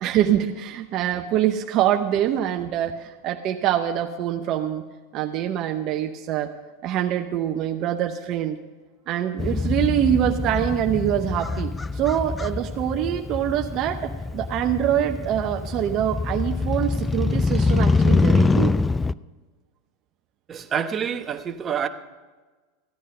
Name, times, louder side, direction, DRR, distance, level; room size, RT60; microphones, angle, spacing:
voice 1, 0.0-4.8 5.1-6.5 6.8-8.6 9.1-18.7, right 11 dB, 45° right, 5 dB, 0.8 m, -24 dB
Motorcycle, 9.4-19.1, left 3 dB, 15° left, 0.3 m, -24 dB
voice 2, 20.5-21.9, right 8 dB, 25° right, 6 dB, 1.0 m, -27 dB
15.0 x 9.9 x 5.5 m, 1.3 s
supercardioid pair, 120°, 0 cm